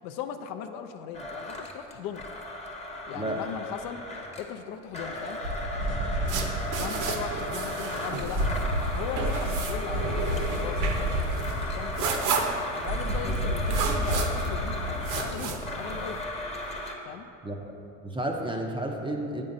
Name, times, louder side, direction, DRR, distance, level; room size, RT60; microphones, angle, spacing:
voice 1, 0.0-2.3 3.1-4.0 4.4-5.4 6.8-12.3 12.8-16.2 17.1-17.3, left 8 dB, 55° left, 7 dB, 0.5 m, -39 dB
Domestic sounds home sounds, 1.1-4.5 4.9-16.9, left 1 dB, 15° left, 0.9 m, -36 dB
sound 1, 5.4-8.1 8.3-15.6, equal, 75° right, 1.5 m, -31 dB
sound 2, 6.3-16.2, right 4 dB, 50° right, 0.8 m, -34 dB
voice 2, 17.4-17.7 18.0-19.4, right 1 dB, 10° right, 2 dB, 0.5 m, -32 dB
8.5 x 5.3 x 2.6 m, 2.8 s
hypercardioid pair, 75°, 42 cm